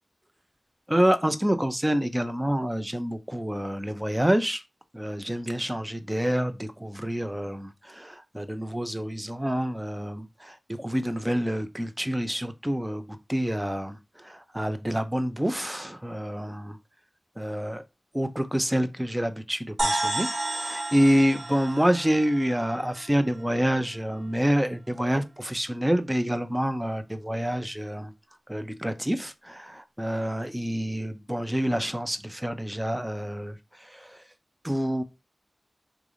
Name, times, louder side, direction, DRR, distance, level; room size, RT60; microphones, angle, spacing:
voice 1, 0.9-4.6 4.9-13.0 13.3-16.8 17.4-17.8 18.1-28.1 28.5-33.6 33.9-34.1 34.6-35.0, equal, 10° right, 0.5 m, -27 dB
sound 1, 19.8-23.6, right 1 dB, 70° right, 0.9 m, -31 dB
3.6 x 3.3 x 2.5 m
wide cardioid pair, 65°, 0 cm